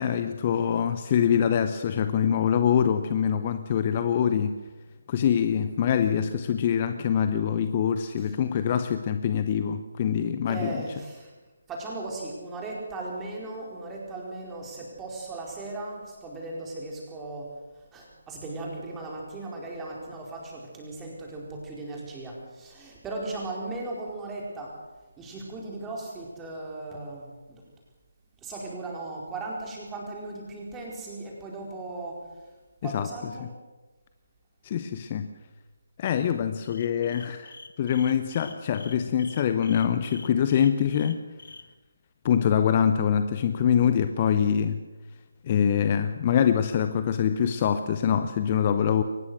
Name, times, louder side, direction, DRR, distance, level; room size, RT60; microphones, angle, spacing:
voice 1, 0.0-4.6 5.1-10.9 32.8-33.1 34.6-35.3 36.0-41.2 42.2-44.8 45.4-49.0, left 8 dB, 30° left, 10 dB, 0.8 m, -24 dB
voice 2, 10.5-11.3 11.7-17.5 17.9-24.7 25.2-27.6 28.4-32.2 32.8-33.5, right 2 dB, 10° right, -2 dB, 4.6 m, -37 dB
sound 1, 36.6-41.6, left 3 dB, 60° left, 1.5 m, -46 dB
23.0 x 19.5 x 6.4 m, 1.2 s
figure-of-eight pair, 150°, 0 cm